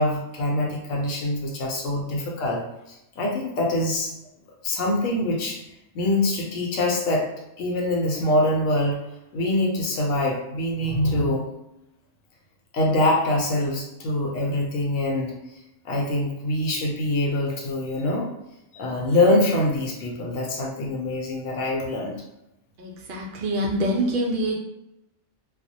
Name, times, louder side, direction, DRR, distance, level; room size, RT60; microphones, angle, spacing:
voice 1, 0.0-2.6 2.9-4.1 4.6-5.6 5.9-7.3 7.6-9.0 9.3-11.5 12.7-15.4 15.8-18.3 18.7-22.1, left 1 dB, 80° left, -1 dB, 0.9 m, -24 dB
voice 2, 22.8-24.5, right 1 dB, 60° right, -2 dB, 0.6 m, -25 dB
2.4 x 2.0 x 2.6 m, 0.89 s
omnidirectional pair, 1.3 m